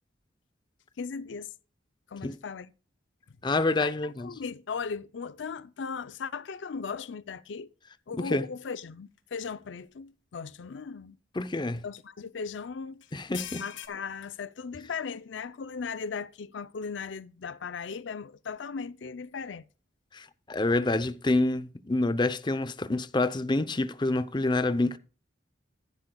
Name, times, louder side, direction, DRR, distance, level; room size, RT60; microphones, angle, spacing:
voice 1, 1.0-1.5 2.1-2.7 3.8-3.9 4.2-7.7 8.1-11.2 11.8-13.0 13.6-19.6, left 5 dB, 70° left, 0.5 m, -37 dB
voice 2, 3.4-4.3 8.2-8.4 11.3-11.8 13.1-13.6 20.1-25.0, left 2 dB, 25° left, 0.6 m, -27 dB
sound 1, 9.2-9.3 9.8-9.9 11.8-12.0 13.0-13.9, left 11 dB, 90° left, 1.4 m, -41 dB
14.5 x 11.5 x 2.3 m
head